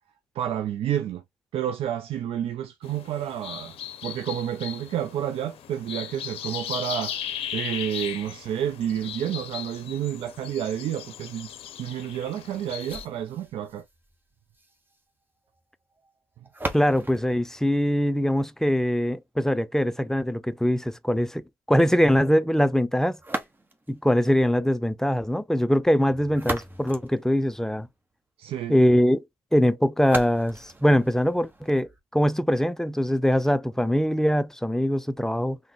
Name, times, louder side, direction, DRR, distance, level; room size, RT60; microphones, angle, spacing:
voice 1, 0.4-1.2 1.5-3.8 4.0-11.5 11.8-13.8 28.4-28.7, right 10 dB, 60° right, 0.4 m, -30 dB
sound 1, 2.8-13.1, left 10 dB, 60° left, 0.6 m, -37 dB
sound 2, 12.8-18.8 23.2-24.0 26.0-28.0 30.0-32.0, right 2 dB, 20° right, 1.0 m, -38 dB
voice 2, 16.7-23.2 23.9-27.9 28.7-29.2 29.5-35.6, equal, 5° left, 0.4 m, -22 dB
3.6 x 2.1 x 3.2 m
hypercardioid pair, 55°, 11 cm